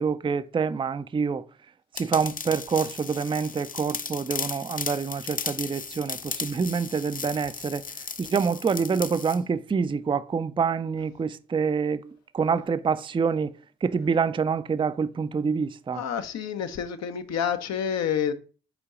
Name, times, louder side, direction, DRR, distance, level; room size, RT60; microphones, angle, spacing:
voice 1, 0.0-1.4 1.9-7.8 8.2-13.6 13.8-16.0, right 5 dB, 15° right, 0.4 m, -26 dB
sound 1, 2.0-9.4, left 5 dB, 30° left, 0.6 m, -36 dB
voice 2, 15.9-18.3, left 8 dB, 65° left, 0.8 m, -28 dB
5.0 x 4.6 x 4.9 m
hypercardioid pair, 40°, 29 cm